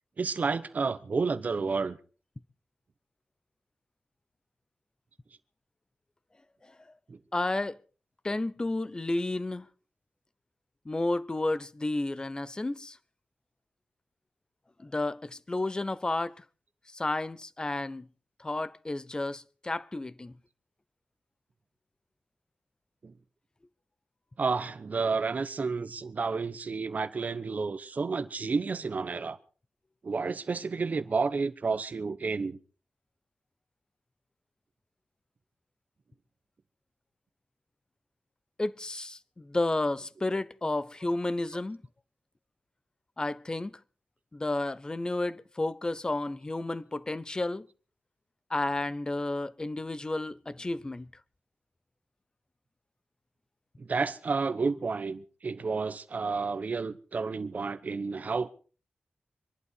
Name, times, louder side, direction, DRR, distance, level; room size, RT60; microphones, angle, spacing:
voice 1, 0.2-2.0 7.1-7.2 23.0-23.1 24.4-29.4 30.0-32.6 53.8-58.5, right 4 dB, 50° right, 0.9 m, -31 dB
voice 2, 7.3-7.8 8.2-9.7 10.9-13.0 14.8-16.4 16.9-18.1 18.4-20.4 38.6-41.8 43.2-43.8 44.3-47.7 48.5-51.1, left 2 dB, 25° left, 0.7 m, -32 dB
25.5 x 11.5 x 4.6 m
wide cardioid pair, 100°, 3 cm